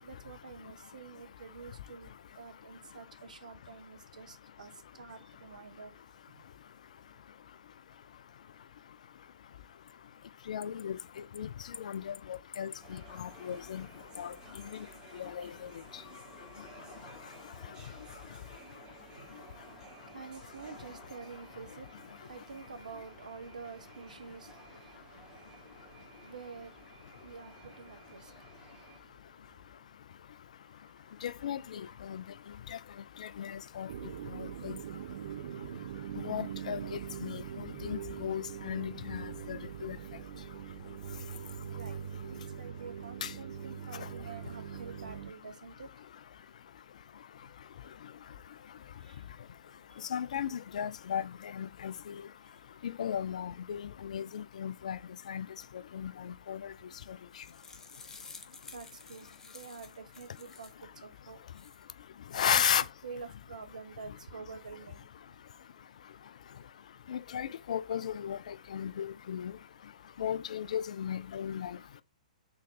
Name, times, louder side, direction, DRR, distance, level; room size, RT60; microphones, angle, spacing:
voice 1, 0.0-5.9 19.1-26.9 27.2-28.3 29.0-29.1 41.7-42.0 42.3-45.9 49.0-49.2 58.7-61.4 62.3-62.6 63.0-65.1, right 5 dB, 75° right, 0.8 m, -48 dB
voice 2, 10.5-11.0 11.4-11.5 11.8-13.9 14.2-14.3 15.2-15.5 31.2-32.2 33.2-33.9 34.4-34.8 36.2-40.0 43.2-43.3 50.1-52.1 52.8-55.0 55.3-55.5 55.9-56.6 62.3-62.8 67.1-69.5 70.2-71.8, left 9 dB, 65° left, 0.3 m, -35 dB
sound 1, 12.8-29.0, right 3 dB, 20° right, 1.7 m, -55 dB
sound 2, 33.9-45.3, right 9 dB, 60° right, 0.4 m, -42 dB
sound 3, 57.1-60.8 61.3-61.8, left 4 dB, 10° left, 0.6 m, -52 dB
4.0 x 3.6 x 2.6 m
figure-of-eight pair, 115°, 4 cm